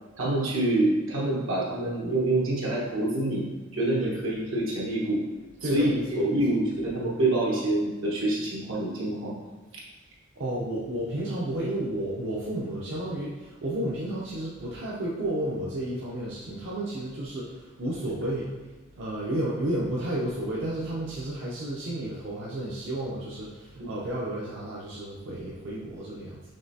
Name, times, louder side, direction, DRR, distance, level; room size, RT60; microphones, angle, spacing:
voice 1, 0.2-3.4 3.7-5.2 5.6-9.3 23.8-23.9, right 1 dB, 80° right, -4 dB, 1.2 m, -26 dB
voice 2, 5.6-6.4 10.4-18.5 18.9-26.4, right 1 dB, 65° right, -6 dB, 0.6 m, -32 dB
5.3 x 3.2 x 2.7 m, 1.2 s
head